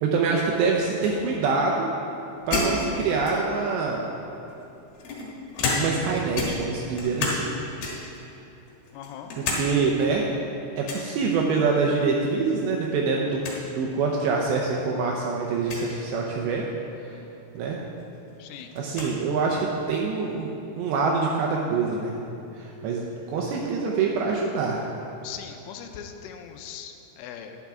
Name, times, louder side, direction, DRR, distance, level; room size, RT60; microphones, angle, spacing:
voice 1, 0.0-1.9 2.5-4.0 5.8-7.5 9.4-10.4 10.8-13.4 13.7-16.7 17.5-17.8 18.8-20.5 20.8-22.1 22.6-24.9, right 4 dB, 80° right, -1 dB, 2.6 m, -25 dB
sound 1, 2.5-3.7 4.5-6.1 6.3-7.5 7.8-8.2 8.7-9.7 10.0-10.1 10.8-11.1 12.5-12.9 13.2-13.3 13.4-13.6 14.4-14.5 15.6-15.9 17.6-17.7 18.0-19.1, left 3 dB, 60° left, 2.9 m, -30 dB
voice 2, 8.9-9.3 18.4-18.7 25.2-27.6, left 8 dB, 85° left, 6 dB, 3.1 m, -40 dB
11.5 x 10.0 x 3.6 m, 2.8 s
omnidirectional pair, 5.7 m